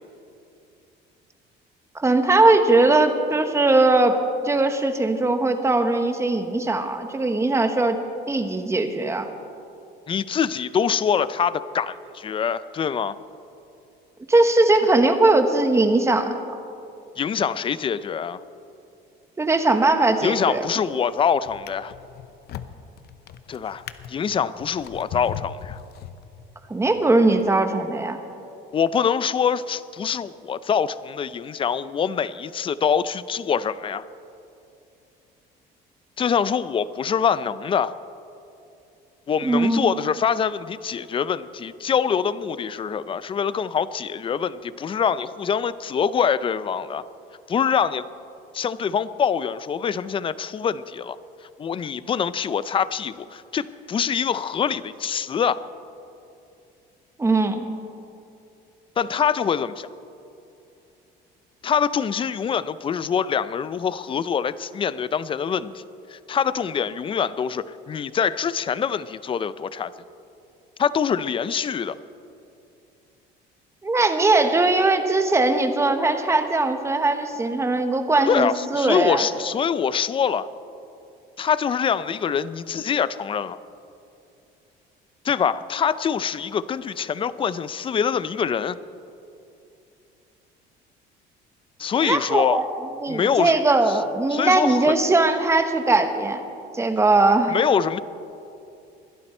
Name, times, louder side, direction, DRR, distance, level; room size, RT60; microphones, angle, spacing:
voice 1, 1.9-4.2 4.4-8.0 8.3-9.3 14.3-16.3 19.4-20.7 26.7-28.2 39.4-39.9 57.2-57.7 73.8-79.2 92.0-92.6 93.0-96.4 96.7-97.6, right 2 dB, 15° right, 7 dB, 1.1 m, -20 dB
voice 2, 10.1-13.2 17.2-18.4 20.2-21.9 23.5-23.8 24.1-25.8 28.7-34.0 36.2-37.9 39.3-47.0 47.5-48.0 48.5-51.2 51.6-55.6 59.0-59.9 61.6-65.8 66.1-69.9 70.8-72.0 78.3-80.5 81.4-83.6 85.2-88.8 91.8-92.6 93.1-93.6 93.9-94.0 94.3-94.9 97.5-98.0, left 7 dB, 30° left, 16 dB, 0.5 m, -24 dB
Drawer open or close, 20.5-20.9 21.5-26.6 27.3-27.5, left 10 dB, 55° left, 0.7 m, -39 dB
21.0 x 11.5 x 4.4 m, 2.6 s
cardioid pair, 120°, 19 cm